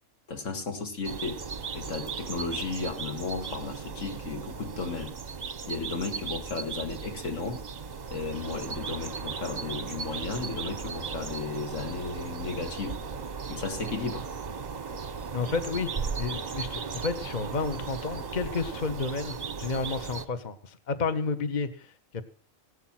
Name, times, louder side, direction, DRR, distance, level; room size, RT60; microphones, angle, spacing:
voice 1, 0.3-1.4 1.7-5.1 5.7-7.7 8.1-13.0 13.5-14.3, left 4 dB, 70° left, 2.1 m, -34 dB
sound 1, 1.0-20.3, right 5 dB, 40° right, 0.9 m, -36 dB
voice 2, 15.3-22.2, left 4 dB, 35° left, 1.1 m, -31 dB
17.0 x 12.0 x 5.9 m
omnidirectional pair, 1.3 m